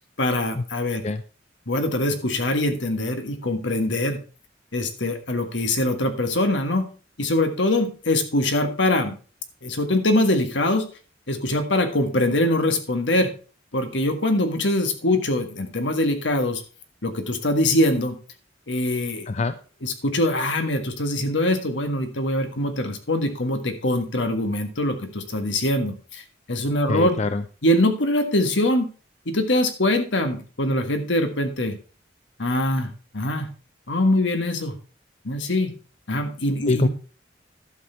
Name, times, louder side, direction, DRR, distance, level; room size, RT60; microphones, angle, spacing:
voice 1, 0.2-1.0 1.7-4.2 4.7-6.9 7.2-9.1 9.6-10.8 11.3-13.3 13.7-16.6 17.0-18.2 18.7-19.3 19.8-27.2 27.6-28.9 29.3-31.8 32.4-33.5 33.9-34.7 35.3-35.7 36.1-36.9, left 1 dB, 75° left, 6 dB, 1.6 m, -23 dB
voice 2, 19.3-19.6 26.9-27.4 36.7-36.9, left 3 dB, 35° left, 11 dB, 0.4 m, -24 dB
11.5 x 6.5 x 4.5 m, 0.37 s
head